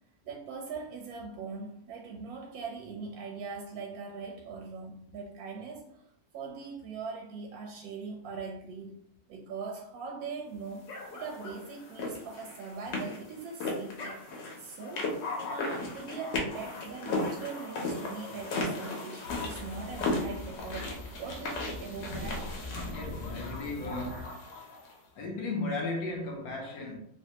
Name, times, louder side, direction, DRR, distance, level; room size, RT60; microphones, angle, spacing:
voice 1, 0.2-6.0 6.3-8.9 9.3-14.2 14.6-15.2 15.5-22.6, right 4 dB, 70° right, 0.9 m, -41 dB
sound 1, 10.9-24.9, left 2 dB, 80° left, 1.4 m, -36 dB
sound 2, 19.3-24.2, left 2 dB, 90° right, 1.3 m, -42 dB
voice 2, 22.9-24.4 25.1-27.0, left 2 dB, 65° left, 1.0 m, -35 dB
3.4 x 2.1 x 2.7 m
omnidirectional pair, 1.9 m